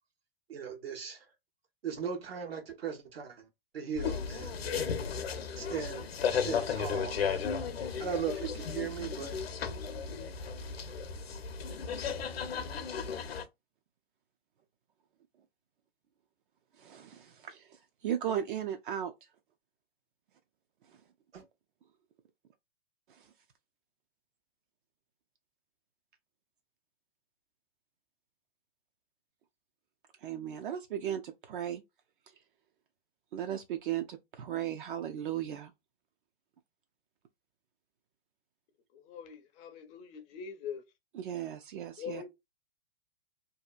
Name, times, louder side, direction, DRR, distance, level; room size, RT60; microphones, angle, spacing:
voice 1, 0.5-1.3 1.8-3.5 3.7-4.6 5.6-7.4 8.0-9.3 21.3-21.4, right 7 dB, 75° right, 0.9 m, -38 dB
sound 1, 4.0-13.4, left 6 dB, 80° left, 0.7 m, -35 dB
voice 2, 16.8-19.1 23.1-23.3 30.2-31.8 33.3-35.7 41.1-42.2, right 10 dB, 55° right, 0.5 m, -36 dB
voice 3, 38.9-40.8 42.0-42.3, left 7 dB, 25° left, 0.4 m, -42 dB
2.7 x 2.2 x 2.3 m
hypercardioid pair, 110°, 30 cm